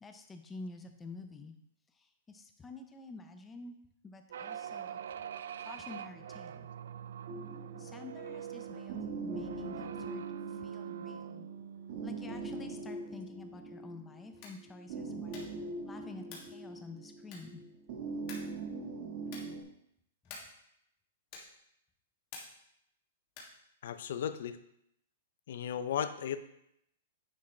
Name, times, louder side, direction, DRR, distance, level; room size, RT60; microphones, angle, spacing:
voice 1, 0.0-1.5 1.9-3.8 4.0-5.3 5.6-6.7 7.8-9.0 9.2-11.5 12.0-17.6 20.2-20.4, left 3 dB, 10° left, 6 dB, 0.5 m, -49 dB
sound 1, 4.3-13.1, right 9 dB, 70° right, 0.3 m, -44 dB
sound 2, 7.3-19.6, right 3 dB, 40° right, 1.4 m, -43 dB
sound 3, 14.3-14.7 15.3-15.6 16.2-16.6 17.3-17.7 18.3-18.6 19.2-19.6 20.2-20.6 21.3-21.6 22.3-22.7 23.3-23.6, left 4 dB, 30° left, 1.7 m, -50 dB
voice 2, 23.8-24.6 25.5-26.4, left 9 dB, 55° left, 11 dB, 0.5 m, -35 dB
9.5 x 6.2 x 3.3 m, 0.76 s
hypercardioid pair, 180°, 0 cm